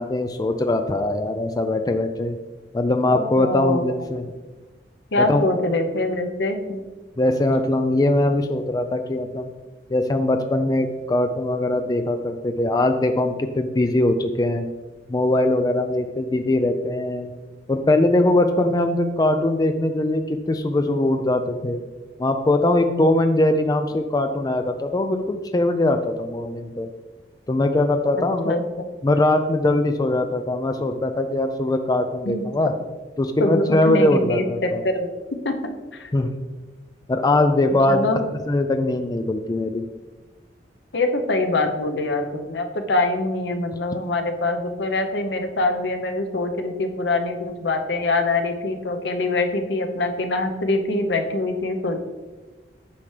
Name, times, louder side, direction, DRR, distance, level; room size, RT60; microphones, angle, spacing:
voice 1, 0.0-2.4 2.7-4.2 5.2-5.4 7.2-9.5 9.9-14.7 15.1-17.3 17.7-21.8 22.2-26.9 27.5-28.5 29.0-32.7 33.2-34.8 36.1-36.4 37.1-38.2 38.5-39.8, left 1 dB, 20° left, 7 dB, 0.4 m, -21 dB
voice 2, 3.1-3.8 5.1-6.8 28.2-28.6 32.3-32.4 33.4-35.1 35.4-36.1 37.9-38.2 40.9-52.0, left 2 dB, 75° left, 5 dB, 0.8 m, -24 dB
8.5 x 5.8 x 3.3 m, 1.2 s
head